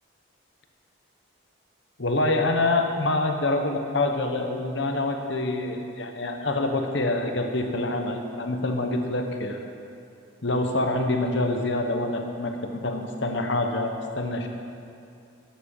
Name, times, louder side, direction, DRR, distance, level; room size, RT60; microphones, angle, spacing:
voice 1, 2.0-9.6 10.4-14.5, left 2 dB, 60° left, 4 dB, 1.1 m, -26 dB
10.5 x 7.7 x 7.4 m, 2.5 s
head